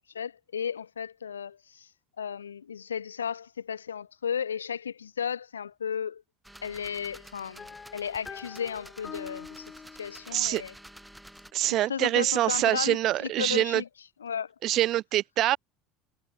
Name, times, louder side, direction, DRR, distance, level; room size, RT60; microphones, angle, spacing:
voice 1, 0.1-1.9 2.2-6.2 6.6-9.7 10.0-10.7 11.8-13.9 14.2-14.5, left 7 dB, 80° left, 1.1 m, -34 dB
sound 1, 6.4-11.5, right 1 dB, 5° right, 5.2 m, -50 dB
sound 2, 7.6-11.4, left 5 dB, 25° left, 3.3 m, -46 dB
voice 2, 10.3-10.6 11.5-13.8 14.6-15.6, right 14 dB, 50° right, 0.8 m, -25 dB
figure-of-eight pair, 70°, 0 cm